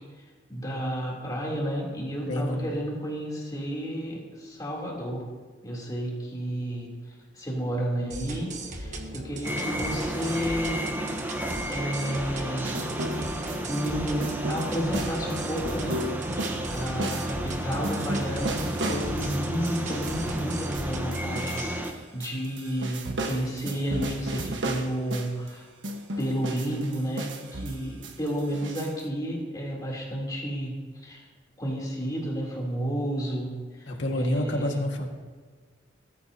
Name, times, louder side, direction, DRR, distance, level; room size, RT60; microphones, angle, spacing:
voice 1, 0.5-5.2 5.6-6.9 7.3-10.9 11.7-12.8 13.7-16.0 16.7-25.7 26.2-31.3 31.6-33.5 33.8-34.8, equal, 20° left, -3 dB, 3.4 m, -31 dB
voice 2, 2.3-2.7 33.9-35.1, left 1 dB, 80° left, 1 dB, 1.9 m, -28 dB
sound 1, 8.1-21.8, right 1 dB, 40° right, 1.3 m, -36 dB
sound 2, 9.4-21.9, right 1 dB, 10° right, 1.2 m, -33 dB
sound 3, 12.6-13.9 14.2-21.9 22.2-25.5 25.8-29.0, right 1 dB, 75° right, 1.4 m, -35 dB
20.5 x 13.5 x 2.9 m, 1.5 s
head